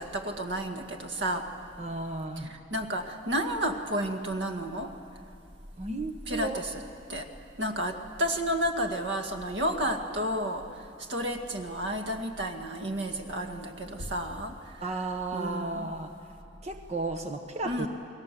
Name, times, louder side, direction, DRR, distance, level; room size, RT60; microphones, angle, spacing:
voice 1, 0.0-1.4 2.4-4.9 6.3-6.7 7.1-7.3 7.6-10.6 11.1-15.0 15.3-15.9 17.6-17.9, equal, 75° right, 4 dB, 2.0 m, -31 dB
voice 2, 1.8-2.6 5.8-6.6 14.8-16.1 16.6-17.9, right 3 dB, 40° right, 4 dB, 1.3 m, -34 dB
29.5 x 21.5 x 7.7 m, 2.5 s
head